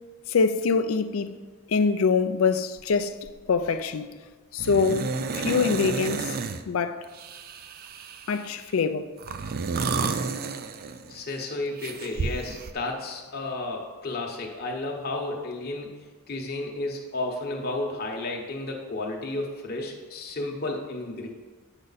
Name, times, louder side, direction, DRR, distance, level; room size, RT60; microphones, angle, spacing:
voice 1, 0.3-1.4 1.7-3.2 3.5-4.2 4.5-6.3 6.7-7.0 8.3-9.1, left 5 dB, 65° left, 0.4 m, -24 dB
sound 1, 2.8-3.0 3.3-3.7 4.6-6.6 7.1-8.5 9.2-11.2 11.8-12.7, right 4 dB, 45° right, 0.4 m, -31 dB
voice 2, 11.1-21.3, left 2 dB, 45° left, 1.0 m, -32 dB
8.0 x 6.4 x 4.1 m
head